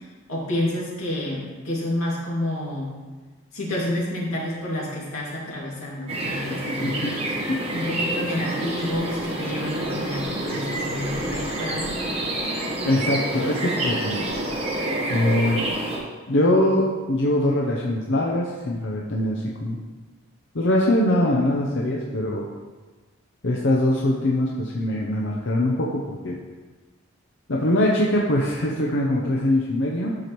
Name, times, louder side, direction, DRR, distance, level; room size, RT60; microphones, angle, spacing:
voice 1, 0.3-2.9 3.5-7.2 7.7-11.9, left 1 dB, 85° left, -5 dB, 2.4 m, -29 dB
sound 1, 6.1-16.0, right 1 dB, 30° right, 1.2 m, -28 dB
voice 2, 6.8-7.1 7.5-7.6 12.8-14.3 15.1-15.6 16.3-19.8 20.5-22.5 23.4-26.4 27.5-30.2, left 1 dB, 60° left, -2 dB, 0.7 m, -22 dB
12.0 x 4.9 x 3.1 m, 1.3 s
head